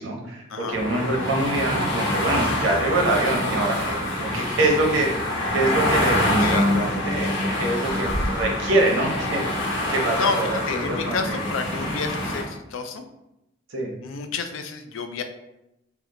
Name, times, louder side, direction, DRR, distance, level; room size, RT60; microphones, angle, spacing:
voice 1, 0.0-5.1 5.5-9.4 9.9-11.4 13.7-14.0, right 2 dB, 75° right, 0 dB, 0.8 m, -25 dB
sound 1, 0.7-12.4, left 1 dB, 70° left, 0.9 m, -25 dB
voice 2, 6.2-6.7 10.2-13.0 14.0-15.2, left 4 dB, 90° left, 7 dB, 0.4 m, -30 dB
2.9 x 2.1 x 3.6 m, 0.89 s
head